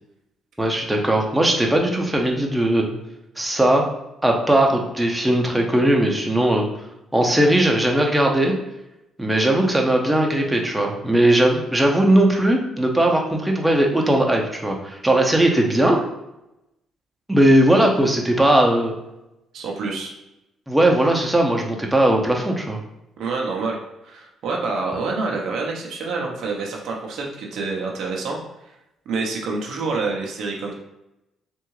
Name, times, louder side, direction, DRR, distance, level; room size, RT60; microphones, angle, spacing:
voice 1, 0.6-2.9 3.4-3.8 4.2-6.7 7.1-8.5 9.2-16.0 17.3-18.9 20.7-22.8, right 1 dB, 10° right, 1 dB, 0.8 m, -18 dB
voice 2, 19.5-20.1 23.2-23.8 24.0-28.4 29.1-30.7, right 3 dB, 70° right, -1 dB, 0.8 m, -27 dB
3.5 x 2.6 x 3.1 m, 0.91 s
supercardioid pair, 55°, 0 cm